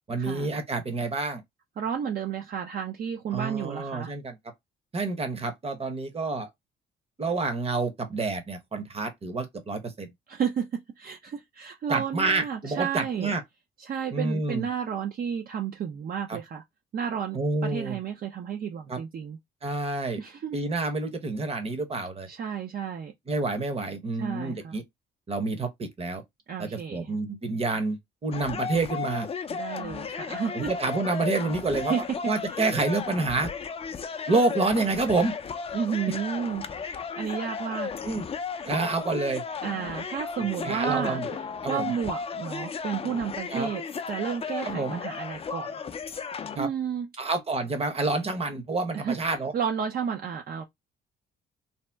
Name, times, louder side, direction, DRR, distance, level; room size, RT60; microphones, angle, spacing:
voice 1, 0.1-1.4 3.3-4.4 4.9-6.5 7.2-10.1 11.9-13.4 14.1-14.7 16.3-16.4 17.3-18.0 18.9-19.0 19.6-20.2 20.5-22.3 23.3-24.8 25.3-26.2 26.6-29.3 30.5-33.5 34.3-35.3 38.0-38.2 38.6-39.4 40.4-41.4 41.6-41.9 43.5-43.7 44.6-45.0 46.6-46.7 47.2-49.5, right 3 dB, 30° right, 0.9 m, -28 dB
voice 2, 1.8-4.1 10.3-13.3 13.8-16.6 16.9-19.4 20.2-20.6 22.3-23.1 24.2-24.8 26.5-27.1 29.5-30.7 31.8-32.0 32.5-32.6 35.7-37.9 39.6-45.7 46.6-47.1 48.9-49.2 49.5-50.6, right 7 dB, 50° right, 0.5 m, -32 dB
sound 1, 28.3-46.6, left 6 dB, 30° left, 0.4 m, -35 dB
2.7 x 2.1 x 3.3 m
cardioid pair, 90°, 20 cm